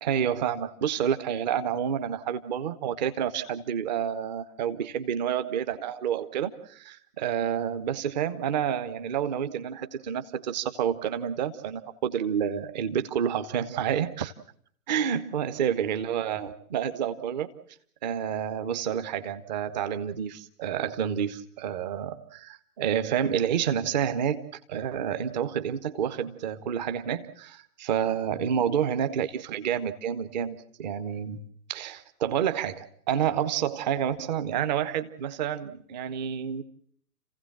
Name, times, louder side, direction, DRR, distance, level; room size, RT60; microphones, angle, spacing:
voice 1, 0.0-14.3 14.9-17.5 18.0-24.4 24.7-31.4 31.7-36.6, right 9 dB, 30° right, 11 dB, 1.1 m, -29 dB
29.5 x 16.0 x 7.4 m, 0.63 s
figure-of-eight pair, 125°, 46 cm